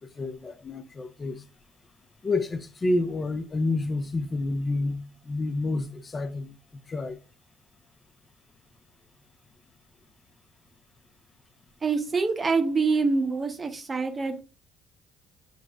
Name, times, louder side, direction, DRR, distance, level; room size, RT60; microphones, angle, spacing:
voice 1, 0.2-1.4 2.2-7.2, left 2 dB, 30° left, 0.3 m, -29 dB
voice 2, 11.8-14.4, right 4 dB, 30° right, 0.6 m, -25 dB
5.0 x 2.0 x 2.3 m
supercardioid pair, 80°, 0 cm